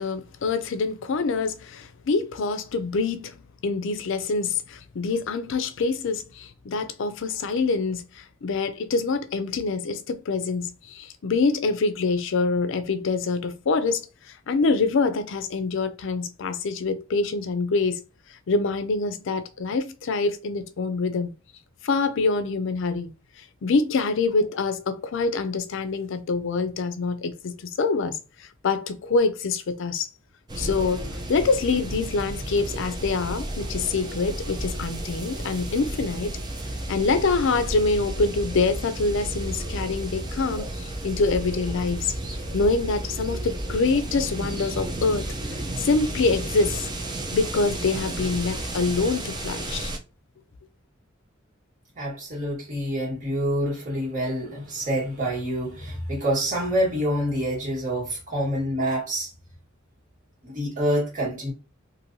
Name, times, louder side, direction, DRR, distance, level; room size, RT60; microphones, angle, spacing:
voice 1, 0.0-3.3 3.6-14.0 14.5-18.0 18.5-21.3 21.8-23.1 23.6-28.2 28.6-30.1 30.6-36.3 36.9-42.1 42.5-45.2 45.8-46.9 47.3-49.9, left 4 dB, 65° left, 0.4 m, -25 dB
sound 1, 30.5-50.0, right 1 dB, 20° right, 0.5 m, -32 dB
voice 2, 51.9-59.3 60.4-61.5, equal, 40° right, 1.6 m, -27 dB
3.1 x 2.6 x 2.6 m
head